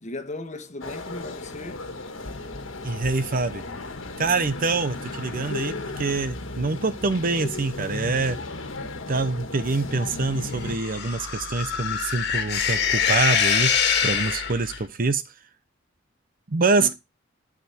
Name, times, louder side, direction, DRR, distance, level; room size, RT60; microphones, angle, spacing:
voice 1, 0.0-1.9 16.8-16.9, left 2 dB, 40° left, 1.3 m, -36 dB
sound 1, 0.8-10.8, left 2 dB, 75° left, 1.5 m, -35 dB
voice 2, 2.8-3.6 4.2-8.4 9.1-13.7 14.0-15.2 16.5-16.9, right 3 dB, 45° right, 0.8 m, -25 dB
sound 2, 10.5-14.8, left 7 dB, 55° left, 1.6 m, -24 dB
12.0 x 5.1 x 4.2 m
head